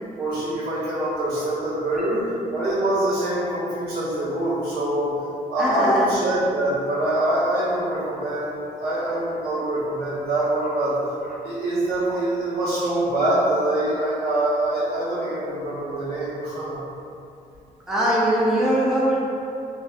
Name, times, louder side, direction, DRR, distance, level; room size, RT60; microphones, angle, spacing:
voice 1, 0.2-2.2 2.5-5.2 5.5-11.0 11.4-16.8, right 1 dB, 80° right, -12 dB, 1.2 m, -24 dB
voice 2, 5.6-6.1 9.1-9.7 10.6-10.8 11.2-11.4 12.1-12.2 17.9-19.2, right 1 dB, 5° right, -7 dB, 0.4 m, -22 dB
2.8 x 2.4 x 2.4 m, 2.6 s
cardioid pair, 125°, 16 cm